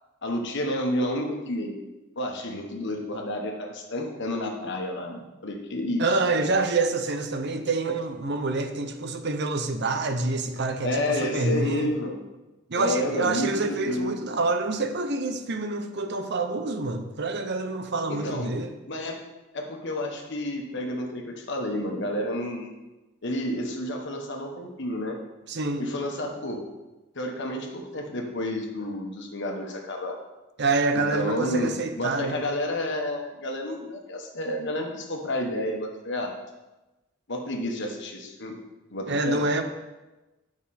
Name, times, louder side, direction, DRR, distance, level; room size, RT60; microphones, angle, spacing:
voice 1, 0.2-1.8 2.2-6.2 10.8-12.2 12.7-14.1 18.1-18.5 18.9-19.1 19.5-22.7 23.2-25.2 25.8-26.6 27.1-30.2 31.1-36.3 37.3-38.6 38.9-39.4, left 1 dB, 60° left, 2 dB, 1.3 m, -30 dB
voice 2, 6.0-11.9 12.7-18.7 25.5-25.9 30.6-32.4 39.1-39.6, right 3 dB, 55° right, 7 dB, 0.8 m, -27 dB
9.5 x 6.0 x 4.3 m, 1.1 s
head